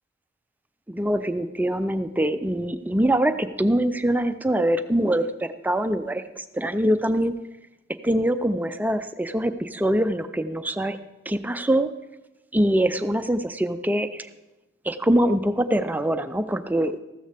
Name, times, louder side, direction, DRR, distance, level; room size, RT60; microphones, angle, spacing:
voice 1, 0.9-7.3 8.0-11.0 11.3-11.9 12.5-14.3 14.8-16.9, right 1 dB, 10° right, 10 dB, 0.4 m, -23 dB
14.5 x 13.0 x 3.4 m, 1.0 s
head